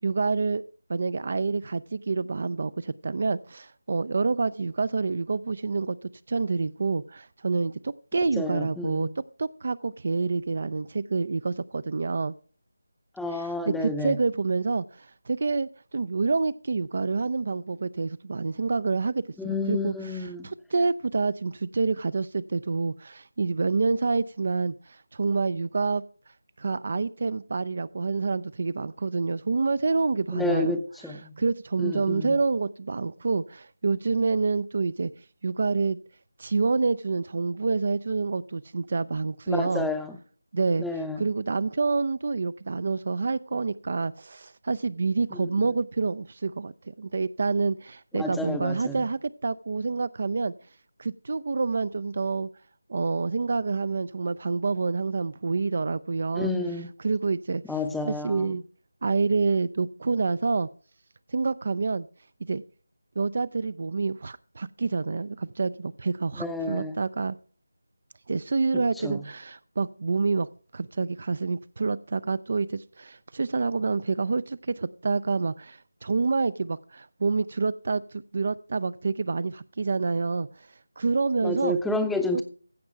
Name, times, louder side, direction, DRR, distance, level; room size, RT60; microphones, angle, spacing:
voice 1, 0.0-0.6 0.9-9.1 9.4-12.3 13.3-26.0 26.6-30.8 31.1-35.1 35.4-36.0 36.4-39.9 40.5-40.9 41.2-46.7 47.0-50.5 51.0-52.5 52.9-56.5 57.0-58.6 59.0-60.7 61.3-62.1 62.5-62.6 63.2-67.4 68.3-70.5 70.7-80.7 81.0-81.8 82.3-82.4, right 4 dB, 40° right, 0.3 m, -27 dB
voice 2, 8.4-9.1 13.2-14.2 19.4-20.5 30.3-31.3 31.8-32.3 39.5-40.2 40.8-41.2 45.3-45.5 48.1-49.0 56.3-56.9 57.7-58.5 66.4-66.9 68.7-69.2 81.4-82.4, left 2 dB, ahead, 0.7 m, -30 dB
15.5 x 5.2 x 4.6 m
figure-of-eight pair, 160°, 0 cm